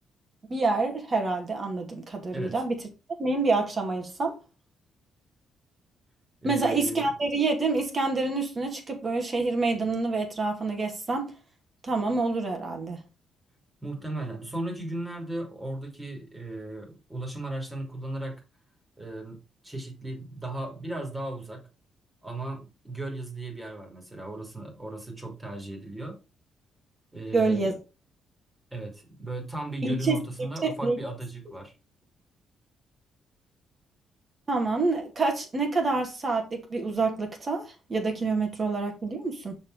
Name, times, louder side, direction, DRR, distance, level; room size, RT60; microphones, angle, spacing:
voice 1, 0.5-2.8 3.2-4.3 6.4-11.3 11.8-13.0 27.3-27.7 29.8-30.2 30.6-31.0 34.5-39.6, right 3 dB, 35° right, 2.5 m, -27 dB
voice 2, 6.4-7.1 13.8-18.4 19.0-19.4 19.6-21.6 22.2-26.2 27.1-27.7 28.7-31.7, right 2 dB, 15° right, 3.0 m, -36 dB
6.5 x 4.4 x 5.0 m
cardioid pair, 80°, 0 cm